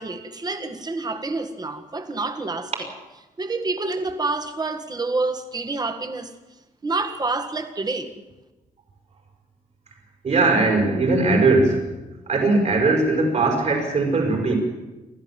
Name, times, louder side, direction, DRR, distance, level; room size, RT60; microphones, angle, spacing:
voice 1, 0.0-2.9 3.4-6.3 6.8-8.1, right 3 dB, 30° right, 1.8 m, -28 dB
voice 2, 10.2-11.9 12.3-14.5, right 3 dB, 55° right, 5.8 m, -19 dB
28.5 x 12.5 x 7.5 m
cardioid pair, 115°, 14 cm